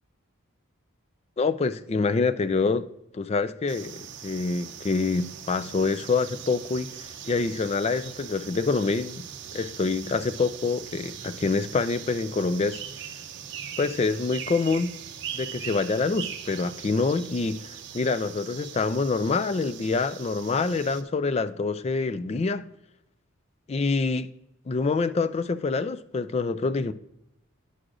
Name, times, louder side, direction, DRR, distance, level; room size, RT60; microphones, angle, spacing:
voice 1, 1.4-2.9 3.1-9.3 9.5-12.8 13.8-14.9 15.3-22.6 23.7-24.3 24.7-26.9, left 4 dB, 30° left, 0.3 m, -26 dB
sound 1, 3.7-21.0, right 9 dB, 60° right, 0.5 m, -41 dB
9.7 x 6.3 x 2.5 m
head